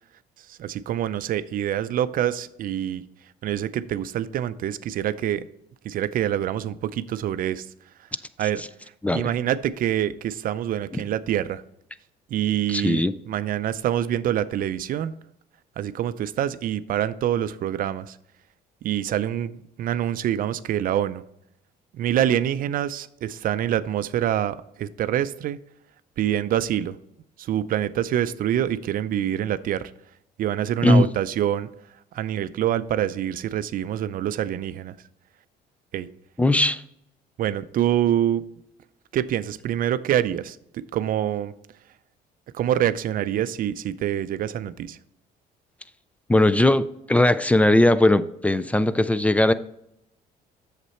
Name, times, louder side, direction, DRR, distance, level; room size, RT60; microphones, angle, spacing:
voice 1, 0.5-3.0 3.4-5.4 5.8-7.7 8.4-8.6 9.1-11.6 12.3-15.1 15.8-18.2 18.8-21.2 21.9-25.6 26.2-27.0 27.4-29.9 30.4-31.7 32.1-35.0 35.9-36.1 37.4-38.4 39.1-41.5 42.5-45.0, right 11 dB, 55° right, 14 dB, 0.5 m, -26 dB
voice 2, 12.7-13.1 30.8-31.1 36.4-36.8 46.3-49.5, left 1 dB, 10° left, 15 dB, 0.3 m, -19 dB
8.2 x 6.6 x 4.3 m, 0.79 s
cardioid pair, 110°, 17 cm